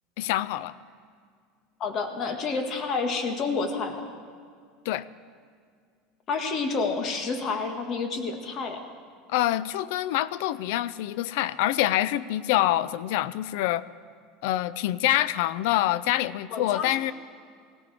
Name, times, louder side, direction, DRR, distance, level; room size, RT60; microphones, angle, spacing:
voice 1, 0.2-0.7 4.9-5.0 9.3-13.8 14.4-17.1, left 14 dB, 70° left, 17 dB, 0.4 m, -26 dB
voice 2, 1.8-4.1 6.3-8.8 16.5-16.9, left 4 dB, 40° left, 5 dB, 1.8 m, -29 dB
19.0 x 15.5 x 3.5 m, 2.1 s
supercardioid pair, 115°, 0 cm